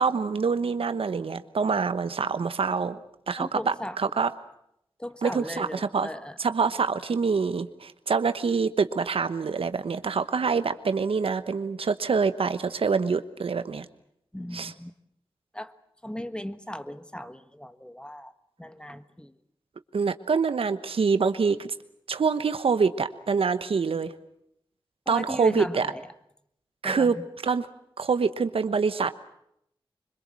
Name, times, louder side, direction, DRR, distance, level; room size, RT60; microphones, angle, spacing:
voice 1, 0.0-3.0 3.3-4.3 5.2-6.1 6.4-13.9 14.5-14.7 19.9-21.7 22.1-24.1 25.1-25.9 26.8-27.2 27.4-27.7 28.0-29.1, right 5 dB, 85° right, 12 dB, 1.1 m, -25 dB
voice 2, 3.4-4.1 5.0-6.3 14.3-14.9 15.5-15.7 16.0-18.3 18.6-19.3 25.1-26.0 26.8-27.2, left 1 dB, 10° left, 12 dB, 1.3 m, -37 dB
25.0 x 22.0 x 7.6 m, 0.74 s
wide cardioid pair, 55°, 9 cm